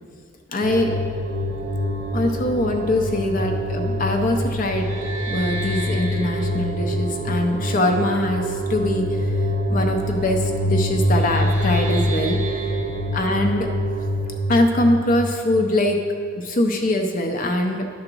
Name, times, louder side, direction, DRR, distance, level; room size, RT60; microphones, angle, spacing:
voice 1, 0.5-1.0 2.1-4.9 5.3-9.1 9.7-12.4 13.1-13.7 14.5-16.0 16.4-17.9, left 1 dB, 40° left, 3 dB, 0.5 m, -22 dB
sound 1, 0.6-16.1, equal, 35° right, 1.0 m, -25 dB
11.0 x 3.8 x 6.0 m, 2.2 s
head